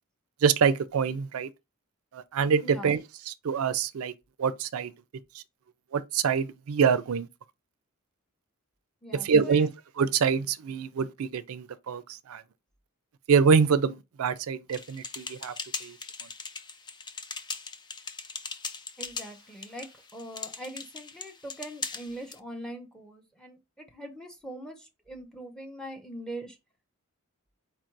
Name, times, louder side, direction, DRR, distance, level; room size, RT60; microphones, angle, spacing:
voice 1, 0.4-1.5 2.1-3.0 3.3-4.1 4.4-4.9 5.3-5.4 5.9-7.3 9.1-9.7 10.0-12.4 13.3-15.6 15.8-16.0, right 6 dB, 70° right, 0.4 m, -25 dB
voice 2, 2.6-3.0 9.0-9.6 19.0-26.6, right 1 dB, 5° left, 0.8 m, -42 dB
sound 1, 14.7-22.4, left 5 dB, 20° left, 0.4 m, -40 dB
4.5 x 2.5 x 4.4 m
head